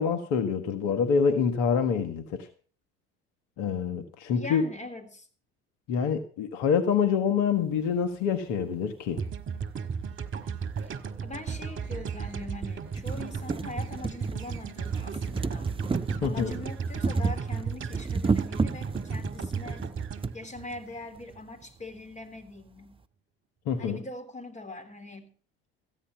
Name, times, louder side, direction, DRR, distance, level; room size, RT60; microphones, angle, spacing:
voice 1, 0.0-2.5 3.6-4.7 5.9-9.2 16.2-16.5 23.6-24.0, left 6 dB, 70° left, 1.5 m, -26 dB
voice 2, 4.3-5.3 10.8-10.9 11.2-15.8 16.2-19.9 20.3-23.0 23.8-25.3, left 2 dB, 25° left, 3.7 m, -42 dB
sound 1, 9.2-21.4, right 6 dB, 40° right, 1.6 m, -35 dB
sound 2, 10.8-10.9 11.9-12.0 12.4-12.5 12.8-20.4 21.3-21.4 21.6-21.7, right 4 dB, 15° right, 0.7 m, -32 dB
15.0 x 9.9 x 5.8 m
hypercardioid pair, 65°, 30 cm